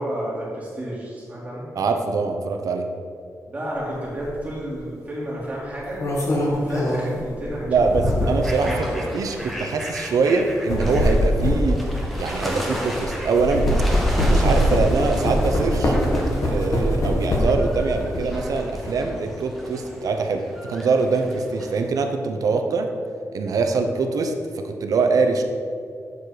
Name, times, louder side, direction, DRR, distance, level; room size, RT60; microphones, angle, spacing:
voice 1, 0.0-1.7 3.5-9.1, equal, 25° right, -8 dB, 2.0 m, -31 dB
voice 2, 1.8-2.9 7.7-13.7 14.2-16.0 16.4-20.4 20.7-22.9 23.3-25.4, right 4 dB, 75° right, 5 dB, 0.9 m, -23 dB
sound 1, 4.2-4.4 5.7-8.5 9.2-9.4 10.4-13.0 13.3-17.7 18.1-18.9, equal, 60° left, 1.9 m, -22 dB
sound 2, 8.4-21.8, equal, ahead, 1.3 m, -35 dB
8.1 x 7.0 x 5.0 m, 2.3 s
wide cardioid pair, 155°, 6 cm